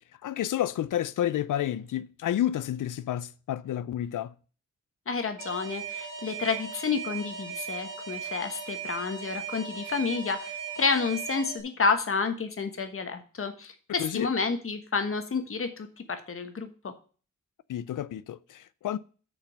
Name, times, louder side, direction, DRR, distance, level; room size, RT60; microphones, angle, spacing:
voice 1, 0.2-4.3 14.0-14.3 17.7-19.0, left 11 dB, 85° left, 0.5 m, -30 dB
voice 2, 5.1-16.9, left 4 dB, 45° left, 1.3 m, -30 dB
Alarm, 5.4-11.6, right 6 dB, 75° right, 2.3 m, -38 dB
6.8 x 5.4 x 6.4 m
wide cardioid pair, 135°, 31 cm